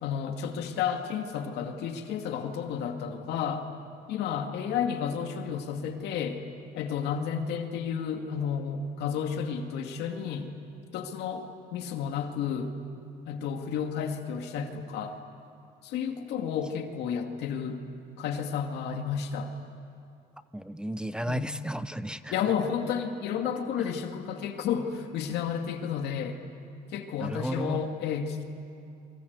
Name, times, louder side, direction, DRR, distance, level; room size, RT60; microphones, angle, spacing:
voice 1, 0.0-3.7 4.1-6.4 6.7-10.5 10.9-12.7 13.3-15.2 15.8-17.8 18.2-19.5 21.3-21.5 22.3-26.4 26.9-28.4, left 7 dB, 80° left, 5 dB, 2.3 m, -31 dB
voice 2, 20.5-22.3 27.2-27.8, right 1 dB, 5° right, 13 dB, 0.7 m, -33 dB
28.0 x 24.0 x 8.2 m, 2.6 s
cardioid pair, 110°, 17 cm